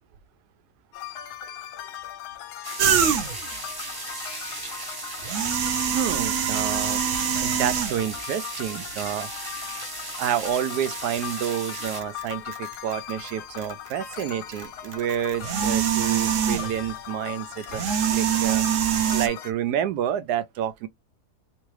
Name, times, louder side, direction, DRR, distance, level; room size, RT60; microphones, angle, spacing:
sound 1, 0.9-19.5, left 10 dB, 90° left, 1.2 m, -39 dB
sound 2, 2.6-12.0, right 2 dB, 20° right, 0.6 m, -36 dB
sound 3, 2.8-3.5 5.1-8.2 9.0-9.1 10.4-10.5 11.0-13.3 13.6-16.9 17.6-19.3, right 8 dB, 65° right, 0.8 m, -25 dB
voice 1, 5.9-7.0 7.4-9.3 10.2-17.9 18.1-18.6 19.1-20.9, right 10 dB, 80° right, 1.1 m, -29 dB
3.5 x 3.2 x 3.1 m
omnidirectional pair, 1.7 m